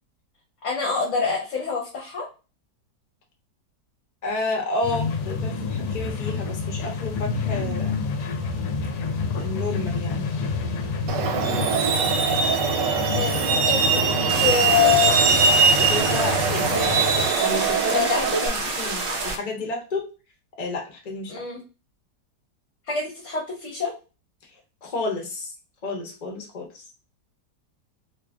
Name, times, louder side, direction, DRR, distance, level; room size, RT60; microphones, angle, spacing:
voice 1, 0.6-2.3 13.1-15.3 16.7-17.3 17.9-18.4 21.3-21.6 22.9-23.9, left 6 dB, 50° left, -2 dB, 1.1 m, -25 dB
voice 2, 4.2-8.0 9.2-10.2 15.7-16.7 17.4-20.0 20.6-21.3 24.8-25.5 25.8-26.8, left 2 dB, 35° left, 1 dB, 0.7 m, -31 dB
sound 1, 4.8-17.3, left 4 dB, 75° left, 1.1 m, -29 dB
Truck, 11.1-18.5, right 5 dB, 85° right, 1.2 m, -22 dB
sound 2, 14.3-19.4, right 3 dB, 65° right, 0.5 m, -28 dB
2.9 x 2.4 x 3.5 m, 0.32 s
omnidirectional pair, 1.9 m